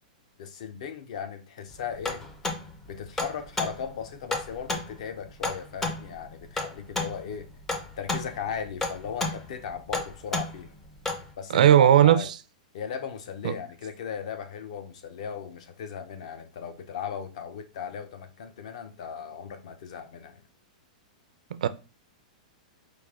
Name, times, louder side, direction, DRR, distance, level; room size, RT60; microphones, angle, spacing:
voice 1, 0.4-2.2 2.9-7.5 8.0-10.7 11.4-12.3 12.7-20.4, left 7 dB, 55° left, 0.7 m, -37 dB
sound 1, 1.7-11.3, left 2 dB, 5° left, 0.4 m, -33 dB
voice 2, 11.5-12.2 21.5-21.7, right 10 dB, 70° right, 0.4 m, -17 dB
5.1 x 2.5 x 3.6 m
supercardioid pair, 170°, 4 cm